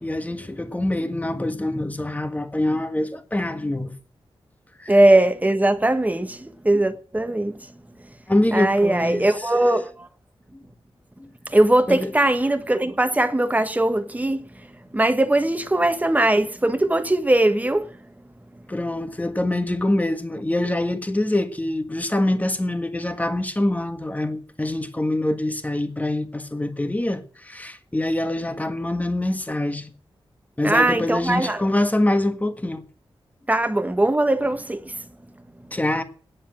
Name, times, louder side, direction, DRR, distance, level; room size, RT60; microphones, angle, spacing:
voice 1, 0.0-3.9 4.8-4.9 8.3-9.3 11.2-11.3 11.9-12.1 18.7-29.9 30.6-32.8 35.7-36.0, left 1 dB, 15° left, 1.6 m, -25 dB
voice 2, 4.9-7.6 8.5-10.1 11.5-14.5 14.9-18.0 30.6-31.6 33.5-35.0, right 1 dB, 15° right, 1.4 m, -20 dB
9.6 x 7.2 x 8.8 m
wide cardioid pair, 80°, 10 cm